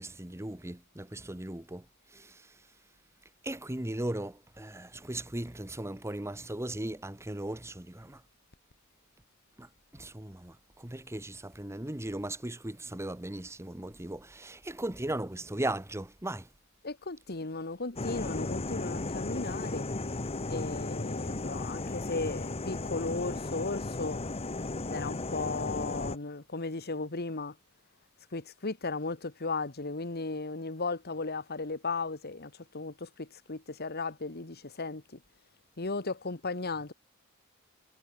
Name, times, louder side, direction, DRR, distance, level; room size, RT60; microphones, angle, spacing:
voice 1, 0.0-1.8 2.1-2.5 3.4-8.2 9.6-16.5, right 1 dB, 15° right, 1.2 m, -37 dB
voice 2, 16.8-19.9 20.5-24.2 24.9-27.5 28.3-35.2 35.8-36.9, left 3 dB, 50° left, 1.7 m, -36 dB
sound 1, 18.0-26.2, left 2 dB, 30° left, 1.0 m, -35 dB
head